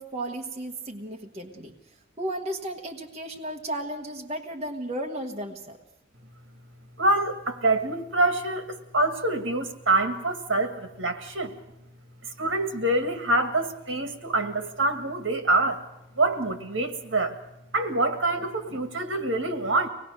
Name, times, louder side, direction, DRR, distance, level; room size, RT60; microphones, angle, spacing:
voice 1, 0.0-1.8 2.2-5.8, right 1 dB, 30° right, 1 dB, 1.4 m, -34 dB
voice 2, 7.0-11.5 12.4-15.8 16.2-17.4 17.7-19.9, right 2 dB, 75° right, 7 dB, 2.0 m, -25 dB
24.5 x 19.0 x 6.5 m, 0.85 s
head